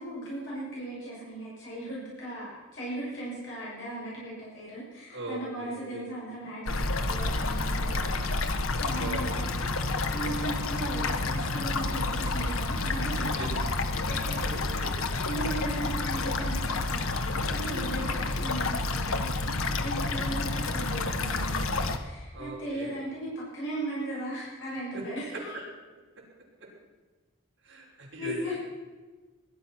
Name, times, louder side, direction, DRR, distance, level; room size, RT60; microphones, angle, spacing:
voice 1, 0.0-13.7 14.1-14.8 15.2-25.6 28.2-28.6, right 1 dB, 60° left, -7 dB, 7.2 m, -38 dB
voice 2, 5.1-6.1 9.0-9.2 13.4-13.5 14.4-14.9 17.7-17.9 22.3-22.9 24.9-25.0 25.3-25.4 27.6-28.6, right 2 dB, 60° right, -4 dB, 5.5 m, -39 dB
sound 1, 6.7-22.0, left 3 dB, 90° left, 1.2 m, -29 dB
20.5 x 11.0 x 6.0 m, 1.3 s
head